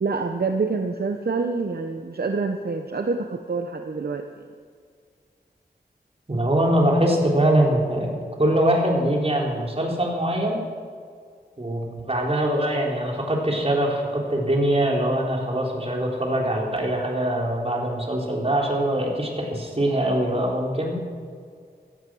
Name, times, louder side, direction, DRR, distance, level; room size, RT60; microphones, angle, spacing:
voice 1, 0.0-4.2, right 4 dB, 65° right, 5 dB, 0.9 m, -26 dB
voice 2, 6.3-10.6 11.6-21.0, right 1 dB, 35° right, -1 dB, 3.9 m, -23 dB
16.5 x 13.0 x 6.3 m, 2.1 s
wide cardioid pair, 80°, 18 cm